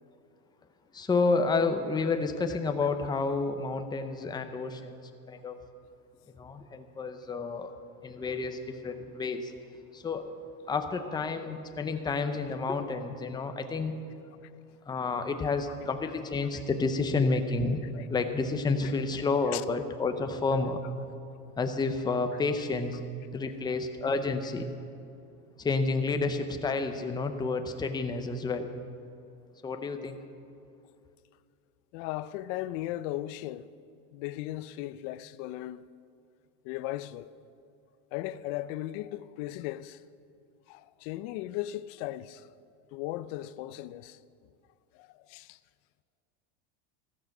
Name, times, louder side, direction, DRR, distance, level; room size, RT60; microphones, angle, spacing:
voice 1, 0.9-5.0 5.3-5.6 6.3-7.7 8.0-9.5 9.9-10.3 10.7-13.9 14.9-20.8 21.6-23.0 23.3-24.7 25.6-28.7 29.6-30.2, left 3 dB, 10° left, 0.7 m, -30 dB
voice 2, 31.9-33.7 34.1-35.8 36.6-37.3 38.1-40.0 40.7-42.4 42.9-44.2 44.9-45.6, left 15 dB, 55° left, 0.5 m, -37 dB
14.5 x 13.5 x 6.0 m
supercardioid pair, 135°, 44 cm